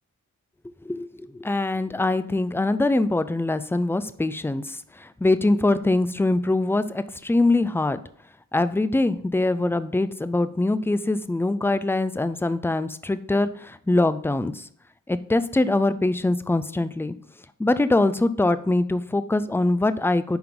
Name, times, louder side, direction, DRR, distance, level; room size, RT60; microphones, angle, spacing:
voice 1, 1.3-8.0 8.5-14.7 15.1-17.1 17.6-20.4, left 2 dB, 5° left, 13 dB, 0.4 m, -23 dB
10.5 x 3.8 x 3.7 m, 0.62 s
wide cardioid pair, 80°, 33 cm